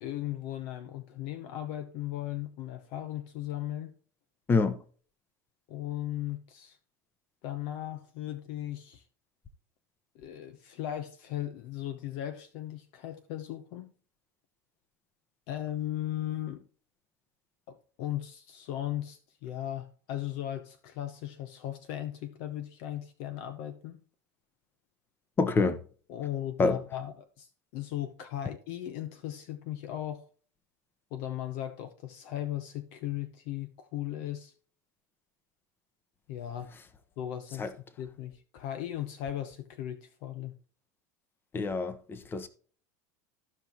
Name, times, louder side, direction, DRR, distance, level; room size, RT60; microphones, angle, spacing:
voice 1, 0.0-3.9 5.7-6.8 7.4-9.0 10.1-13.9 15.5-16.6 17.7-24.0 26.1-27.5 27.7-30.2 31.1-34.5 36.3-36.7 37.2-37.7 38.0-40.5, left 12 dB, 65° left, 1.0 m, -37 dB
voice 2, 25.4-25.8 26.6-26.8 37.6-37.7 41.5-42.5, left 4 dB, 25° left, 1.0 m, -26 dB
14.5 x 5.3 x 3.0 m
hypercardioid pair, 100°, 9 cm